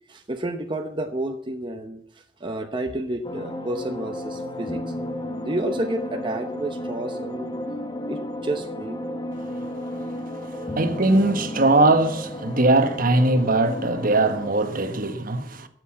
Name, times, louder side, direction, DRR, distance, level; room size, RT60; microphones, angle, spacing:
voice 1, 0.1-5.0 5.4-7.5 8.1-9.0, right 1 dB, 25° right, 0.8 m, -30 dB
sound 1, 3.2-14.5, left 1 dB, 25° left, 1.2 m, -33 dB
voice 2, 9.7-10.1 10.4-15.7, right 2 dB, 50° right, 1.3 m, -21 dB
13.0 x 7.9 x 7.5 m
head